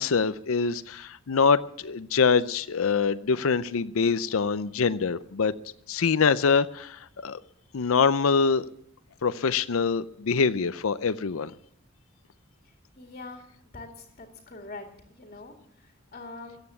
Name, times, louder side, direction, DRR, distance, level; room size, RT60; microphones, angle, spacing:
voice 1, 0.0-5.5 5.9-7.4 7.7-8.6 9.2-11.5, left 5 dB, 70° left, 14 dB, 0.5 m, -24 dB
voice 2, 13.0-13.5 13.7-16.6, left 3 dB, 35° left, 3 dB, 2.2 m, -44 dB
14.5 x 9.1 x 8.4 m, 0.71 s
head